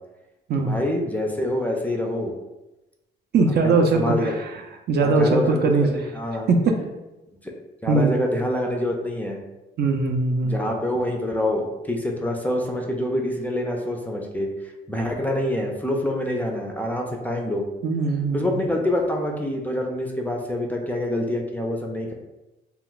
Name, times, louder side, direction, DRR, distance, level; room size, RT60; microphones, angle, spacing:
voice 1, 0.6-2.3 3.6-4.4 5.0-6.5 7.4-7.5 7.8-9.4 10.4-14.5 14.9-17.7 18.3-22.1, left 1 dB, 10° left, 1 dB, 0.4 m, -26 dB
voice 2, 3.3-4.5 4.9-5.9 6.5-6.8 7.9-8.1 9.8-10.5 17.8-18.6, right 3 dB, 55° right, 3 dB, 0.5 m, -20 dB
2.3 x 2.2 x 3.8 m, 1.0 s
cardioid pair, 90°, 20 cm